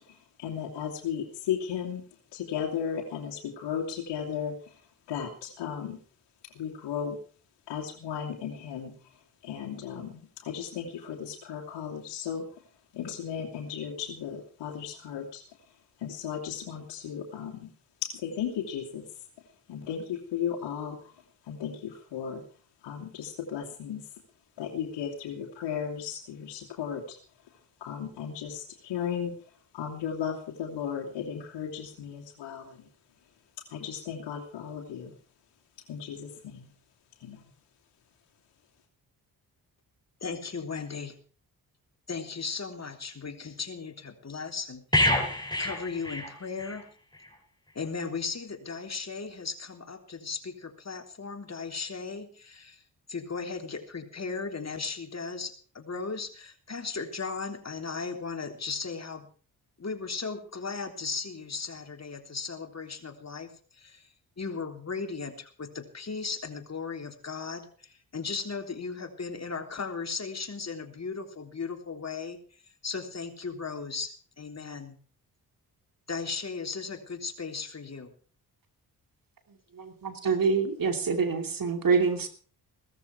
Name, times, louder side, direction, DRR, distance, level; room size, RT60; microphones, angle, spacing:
voice 1, 0.0-2.0 2.3-4.8 5.1-6.0 6.4-7.2 7.7-8.9 9.4-12.5 12.9-15.4 16.0-17.7 18.0-19.1 19.7-21.1 21.4-22.4 22.8-24.0 24.6-27.2 27.8-29.4 29.7-32.9 33.7-35.2 35.9-36.7 37.2-37.5, left 8 dB, 75° left, -1 dB, 2.7 m, -35 dB
voice 2, 40.2-41.1 42.1-46.9 47.7-52.8 53.1-59.3 59.8-64.1 64.4-72.4 72.8-74.1 74.4-75.0 76.1-78.1, left 4 dB, 35° left, 5 dB, 3.4 m, -36 dB
sound 1, 44.9-46.8 47.1-47.3, left 1 dB, 10° left, 5.4 m, -27 dB
voice 3, 79.7-82.3, right 5 dB, 50° right, 7 dB, 2.8 m, -26 dB
17.0 x 14.0 x 4.7 m, 0.41 s
hypercardioid pair, 45°, 43 cm